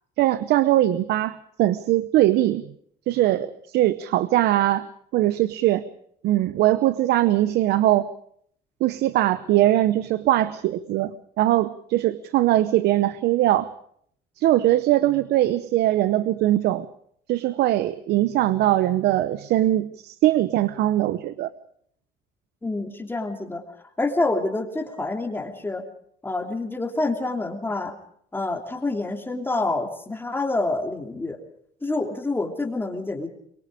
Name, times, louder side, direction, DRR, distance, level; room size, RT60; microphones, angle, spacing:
voice 1, 0.2-2.7 3.1-4.9 5.1-5.9 6.2-8.1 8.8-13.7 14.4-16.9 17.3-21.5, right 14 dB, 80° right, 15 dB, 0.8 m, -21 dB
voice 2, 22.6-23.6 24.0-25.8 26.2-27.9 28.3-31.4 31.8-33.3, left 2 dB, 10° left, 3 dB, 3.0 m, -27 dB
23.0 x 23.0 x 5.0 m, 0.66 s
cardioid pair, 110°, 17 cm